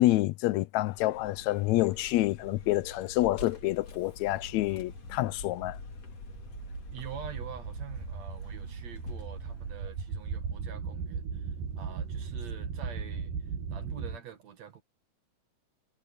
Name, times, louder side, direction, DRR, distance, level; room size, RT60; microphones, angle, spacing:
voice 1, 0.0-5.8, left 17 dB, 80° left, 1.6 m, -27 dB
Vehicle, 0.8-11.1, left 3 dB, 50° left, 4.0 m, -47 dB
sound 1, 6.2-14.2, right 6 dB, 75° right, 3.2 m, -37 dB
voice 2, 6.9-14.8, right 8 dB, 55° right, 3.0 m, -46 dB
omnidirectional pair, 3.9 m